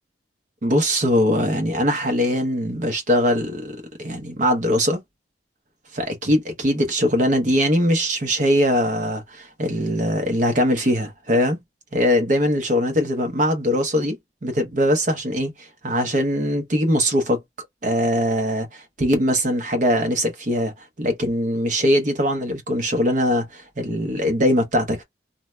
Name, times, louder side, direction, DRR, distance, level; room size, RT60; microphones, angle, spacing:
voice 1, 0.6-5.0 5.9-11.6 11.9-14.2 14.4-17.4 17.8-25.0, equal, 45° right, 0.7 m, -21 dB
2.7 x 2.1 x 3.2 m
head